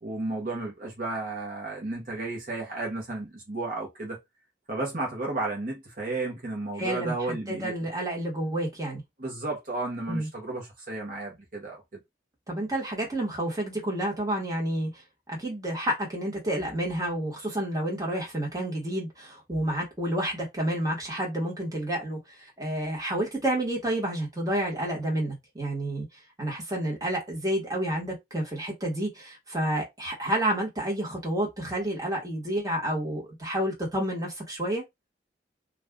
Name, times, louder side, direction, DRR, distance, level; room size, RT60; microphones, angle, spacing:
voice 1, 0.0-4.2 4.7-7.7 9.2-12.0, right 2 dB, 50° right, 1.0 m, -33 dB
voice 2, 6.8-9.0 10.1-10.3 12.5-15.0 15.3-26.1 26.4-34.8, right 1 dB, 20° right, 1.3 m, -30 dB
2.5 x 2.5 x 3.4 m
head